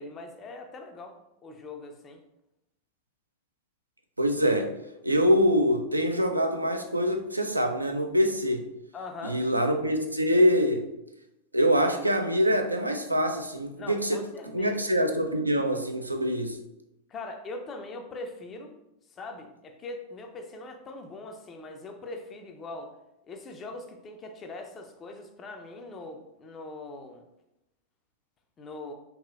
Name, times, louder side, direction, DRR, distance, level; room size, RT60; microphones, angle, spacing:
voice 1, 0.0-2.2 8.9-9.4 13.8-14.8 17.1-18.7 19.1-22.9 23.3-27.3 28.6-28.9, left 2 dB, 25° left, 4 dB, 0.4 m, -41 dB
voice 2, 4.2-4.7 5.0-8.6 9.2-10.8 11.5-14.2 14.5-16.6, equal, 85° right, 5 dB, 0.3 m, -24 dB
2.9 x 2.7 x 2.4 m, 0.88 s
figure-of-eight pair, 90°, 0 cm